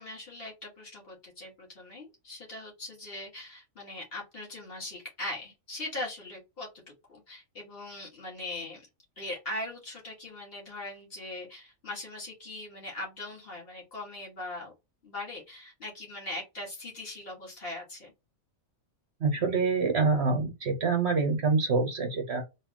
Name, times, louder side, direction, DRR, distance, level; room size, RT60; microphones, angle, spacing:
voice 1, 0.0-6.8 7.1-8.9 9.2-14.7 15.0-18.1, left 2 dB, 45° left, -2 dB, 2.2 m, -40 dB
voice 2, 19.2-22.4, right 4 dB, 55° right, 5 dB, 1.2 m, -26 dB
4.0 x 2.9 x 2.9 m, 0.23 s
omnidirectional pair, 1.4 m